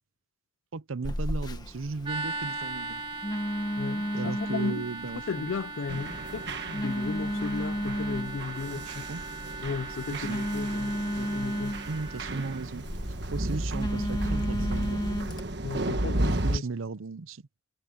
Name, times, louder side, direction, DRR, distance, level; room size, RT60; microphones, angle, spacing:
voice 1, 0.7-3.0 4.1-5.5 8.7-9.2 10.1-10.5 11.8-12.8 13.3-15.0 16.2-17.4, right 4 dB, 80° right, 0.7 m, -36 dB
Telephone, 1.0-15.4, equal, 20° left, 1.3 m, -34 dB
sound 1, 2.0-12.6, right 3 dB, 25° right, 2.4 m, -39 dB
voice 2, 3.8-4.9 5.3-9.0 9.6-11.8 15.6-16.6, left 5 dB, 70° left, 0.4 m, -35 dB
sound 2, 5.9-16.6, right 1 dB, 55° right, 1.5 m, -33 dB
head